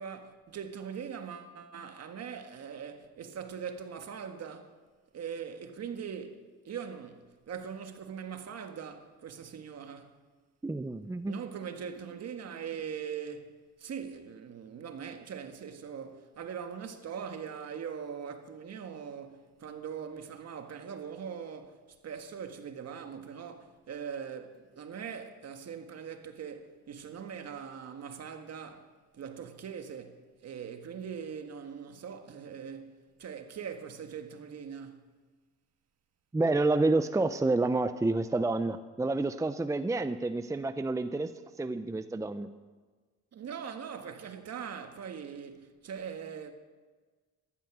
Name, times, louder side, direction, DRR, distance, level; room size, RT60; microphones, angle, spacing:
voice 1, 0.0-4.7 5.1-10.1 11.3-28.9 29.1-35.0 43.3-46.5, right 7 dB, 60° right, 1.7 m, -41 dB
voice 2, 10.6-11.3 36.3-41.3 41.6-42.5, right 2 dB, 10° right, 0.6 m, -29 dB
14.0 x 12.0 x 6.1 m
cardioid pair, 90°, 30 cm